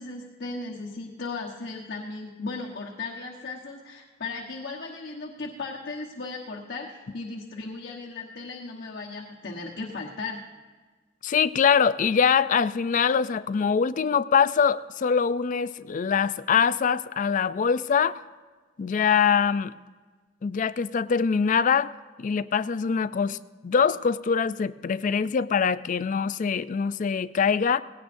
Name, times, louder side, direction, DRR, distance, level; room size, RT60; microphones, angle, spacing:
voice 1, 0.0-10.4, left 3 dB, 60° left, -3 dB, 1.2 m, -36 dB
voice 2, 11.2-18.2 18.8-19.7 20.4-21.9 22.2-23.4 23.6-27.8, left 6 dB, 45° left, 15 dB, 0.4 m, -23 dB
18.5 x 17.0 x 2.6 m, 1.4 s
head